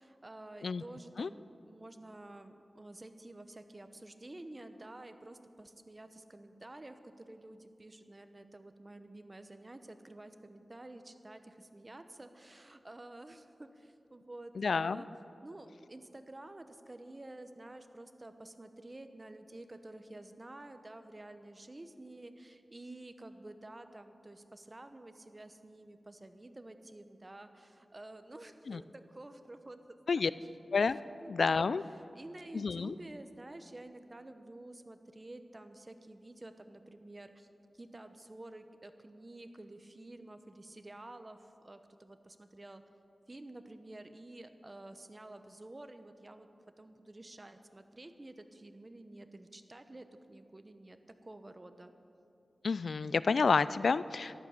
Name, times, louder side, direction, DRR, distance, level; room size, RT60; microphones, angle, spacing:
voice 1, 0.0-15.1 15.4-29.8 30.1-30.5 31.1-37.5 37.7-42.8 43.3-46.5 46.8-51.9, right 2 dB, 30° right, 9 dB, 1.0 m, -50 dB
voice 2, 14.6-15.0 28.7-28.8 30.1-30.3 30.7-31.0 31.3-31.8 32.5-32.9 52.6-54.4, left 4 dB, 75° left, 17 dB, 0.3 m, -29 dB
14.5 x 12.0 x 6.6 m, 2.8 s
wide cardioid pair, 65°, 0 cm